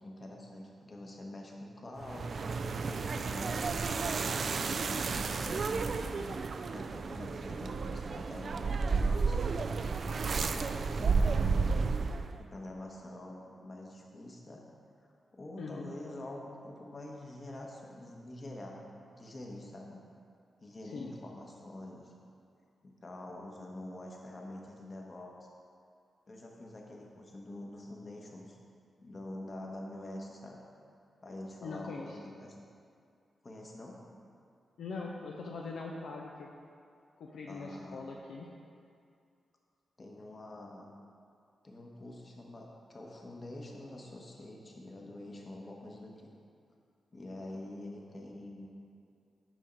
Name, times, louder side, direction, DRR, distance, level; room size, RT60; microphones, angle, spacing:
voice 1, 0.0-3.9 4.6-9.4 10.2-11.9 12.4-14.6 15.3-18.8 19.1-20.0 20.6-22.1 22.8-25.3 26.3-28.6 29.0-30.6 31.2-32.5 33.4-34.0 37.5-38.0 40.0-40.9 41.6-46.3 47.1-48.7, left 1 dB, 45° left, -1 dB, 1.1 m, -46 dB
sound 1, 2.0-12.4, right 4 dB, 60° right, 0.3 m, -32 dB
voice 2, 15.6-15.9 20.8-21.2 31.6-32.2 34.8-36.5 37.2-38.5, left 3 dB, 80° left, -2 dB, 0.5 m, -42 dB
6.2 x 5.1 x 4.5 m, 2.4 s
cardioid pair, 55°, 0 cm